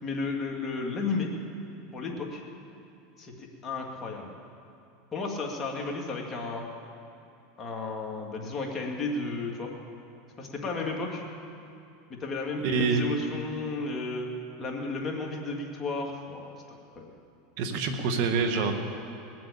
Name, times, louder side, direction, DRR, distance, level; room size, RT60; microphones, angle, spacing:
voice 1, 0.0-1.3 1.9-2.4 3.2-4.3 5.1-6.7 7.6-9.7 10.4-11.2 12.1-14.3 14.6-17.1, left 3 dB, 30° left, 0 dB, 2.7 m, -33 dB
voice 2, 12.6-13.1 17.6-18.7, right 5 dB, 65° right, 5 dB, 1.9 m, -26 dB
20.0 x 7.8 x 8.7 m, 2.7 s
supercardioid pair, 110°, 0 cm